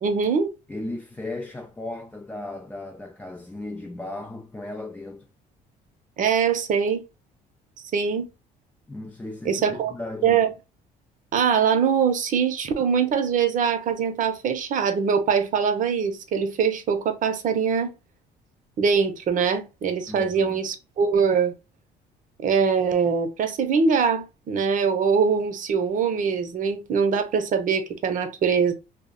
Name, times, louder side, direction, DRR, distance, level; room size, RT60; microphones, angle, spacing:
voice 1, 0.0-0.5 6.2-7.0 7.9-8.3 9.4-9.9 10.2-10.5 11.3-17.9 18.8-21.5 22.4-28.7, right 6 dB, 50° right, 0.7 m, -23 dB
voice 2, 0.7-5.3 8.9-10.4 20.1-20.6, left 2 dB, 10° left, 0.4 m, -36 dB
2.3 x 2.1 x 3.7 m
cardioid pair, 110°, 17 cm